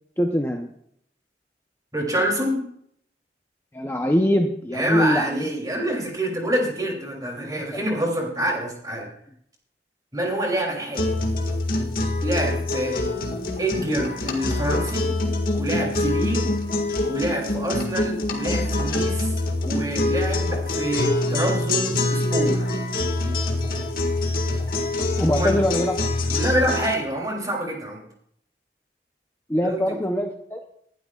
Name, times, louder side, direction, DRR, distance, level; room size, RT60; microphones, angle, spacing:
voice 1, 0.2-0.7 3.7-5.4 7.6-7.7 25.2-26.0 29.5-30.6, equal, 15° left, 3 dB, 0.7 m, -23 dB
voice 2, 1.9-2.6 4.7-9.1 10.1-11.2 12.2-13.0 13.6-15.1 15.6-16.5 17.1-19.4 19.6-22.7 25.3-25.6 26.3-28.0 29.6-29.9, right 1 dB, 20° right, 0 dB, 2.9 m, -26 dB
sound 1, 10.9-26.9, left 2 dB, 50° left, 1.8 m, -25 dB
19.5 x 12.0 x 2.4 m, 0.70 s
head